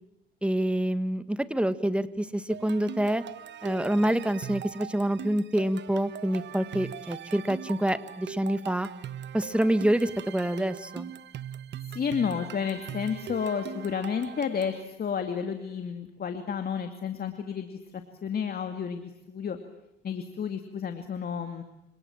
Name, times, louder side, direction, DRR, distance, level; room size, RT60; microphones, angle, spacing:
voice 1, 0.4-3.2 3.6-8.9 9.3-11.1, right 1 dB, 5° right, 12 dB, 1.7 m, -27 dB
sound 1, 2.5-14.8, right 9 dB, 65° right, 1.3 m, -41 dB
voice 2, 11.9-19.6 20.0-21.6, left 7 dB, 50° left, 6 dB, 2.5 m, -31 dB
29.5 x 27.0 x 7.4 m, 0.83 s
cardioid pair, 90°, 20 cm